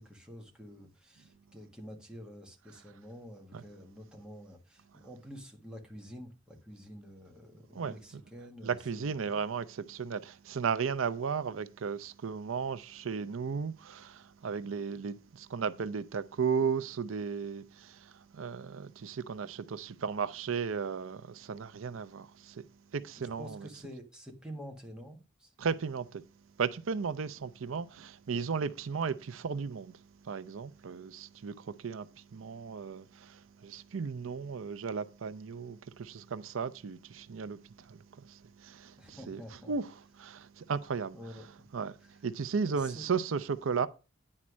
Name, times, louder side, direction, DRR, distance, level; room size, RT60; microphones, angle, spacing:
voice 1, 0.0-9.4 23.2-25.5 39.0-39.7 41.1-41.5 42.0-42.1 42.6-43.1, equal, 5° right, 1.5 m, -48 dB
voice 2, 8.6-22.7 22.9-23.7 25.6-26.2 26.6-39.4 39.7-39.9 40.2-41.2 41.7-43.9, right 5 dB, 85° right, 0.5 m, -35 dB
9.8 x 4.3 x 6.1 m
head